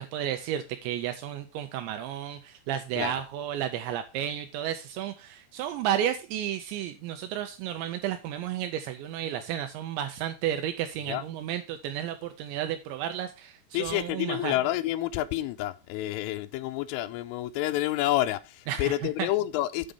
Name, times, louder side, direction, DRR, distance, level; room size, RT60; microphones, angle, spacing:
voice 1, 0.0-14.5 18.7-19.3, right 10 dB, 80° right, 2.6 m, -32 dB
voice 2, 13.7-18.5 18.8-19.9, left 14 dB, 85° left, 3.1 m, -29 dB
9.1 x 5.0 x 5.3 m
omnidirectional pair, 5.8 m